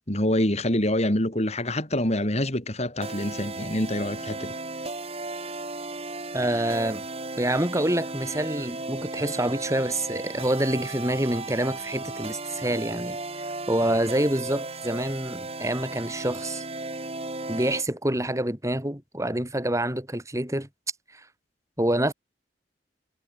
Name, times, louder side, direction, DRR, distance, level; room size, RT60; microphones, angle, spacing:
voice 1, 0.0-4.5, left 1 dB, 35° left, 4.5 m, -26 dB
sound 1, 3.0-17.9, right 2 dB, 35° right, 6.2 m, -35 dB
voice 2, 6.3-7.0 7.4-16.6 17.5-20.7 21.1-21.2 21.8-22.1, right 1 dB, 15° right, 4.9 m, -27 dB
head